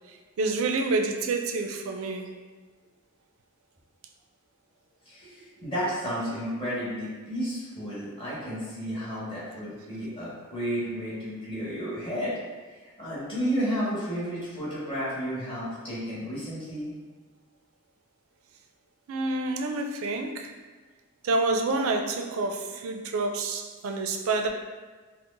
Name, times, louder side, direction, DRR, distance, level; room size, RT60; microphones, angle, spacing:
voice 1, 0.1-2.3 19.1-20.5 21.2-24.5, right 3 dB, 75° right, 4 dB, 0.4 m, -28 dB
voice 2, 5.1-12.3 13.0-16.9, equal, 25° left, -10 dB, 1.2 m, -32 dB
4.5 x 2.0 x 2.5 m, 1.4 s
head